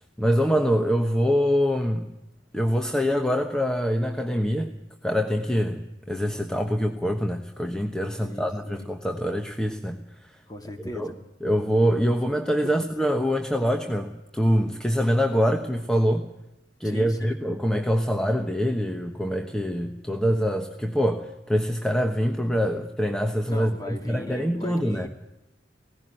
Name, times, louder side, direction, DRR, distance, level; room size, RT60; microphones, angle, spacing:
voice 1, 0.2-2.1 2.5-4.7 5.0-10.4 10.9-11.1 11.4-16.3 16.8-25.1, equal, 5° left, 4 dB, 1.1 m, -24 dB
voice 2, 8.2-8.9 10.5-11.2 12.6-12.7 16.8-17.4 23.5-25.1, left 1 dB, 20° left, 5 dB, 2.5 m, -38 dB
18.0 x 15.5 x 9.1 m, 0.94 s
head